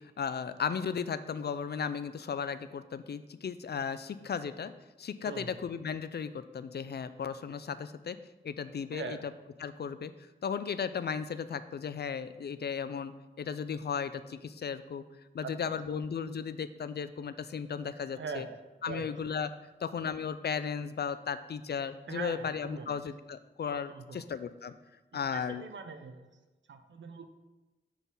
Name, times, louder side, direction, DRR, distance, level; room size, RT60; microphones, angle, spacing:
voice 1, 0.0-4.7 5.0-8.2 8.4-9.3 9.6-10.1 10.4-15.0 15.3-18.5 18.8-19.5 19.8-24.7 25.1-25.6, left 6 dB, 60° left, 13 dB, 0.4 m, -35 dB
voice 2, 5.2-5.6 8.9-9.2 15.4-15.7 18.2-18.6 18.9-19.1 22.1-22.9 23.9-24.2 25.3-26.2 26.7-27.2, right 5 dB, 80° right, 8 dB, 0.6 m, -41 dB
6.2 x 4.0 x 5.3 m, 1.1 s
wide cardioid pair, 70°, 19 cm